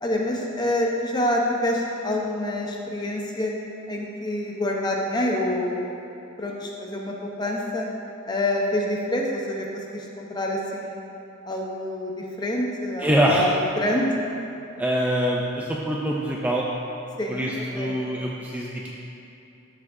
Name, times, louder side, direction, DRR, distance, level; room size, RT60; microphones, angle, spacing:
voice 1, 0.0-3.5 3.9-5.8 6.4-7.9 8.3-11.1 11.5-14.1 17.2-17.9, left 1 dB, 20° left, -1 dB, 0.8 m, -27 dB
voice 2, 13.0-13.4 14.8-16.7 17.3-18.9, equal, 10° right, -3 dB, 0.4 m, -24 dB
12.5 x 6.0 x 2.6 m, 2.8 s
head